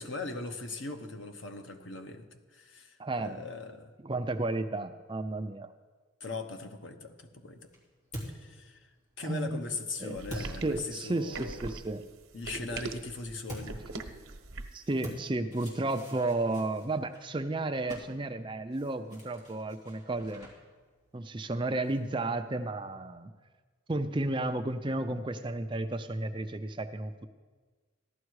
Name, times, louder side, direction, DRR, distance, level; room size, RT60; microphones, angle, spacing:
voice 1, 0.0-3.9 6.2-7.7 8.3-8.9 9.2-11.7 12.3-13.8, left 3 dB, 65° left, 5 dB, 1.1 m, -40 dB
voice 2, 3.0-3.4 4.0-5.7 9.2-9.6 10.0-12.0 12.6-12.7 14.7-20.5 21.1-23.3 23.9-27.3, right 2 dB, 25° right, 8 dB, 0.5 m, -33 dB
sound 1, 7.0-11.4 13.4-22.3, equal, 35° left, 3.0 m, -48 dB
sound 2, 10.1-14.9, right 3 dB, 80° right, 1.0 m, -41 dB
15.0 x 11.5 x 4.8 m, 1.4 s
head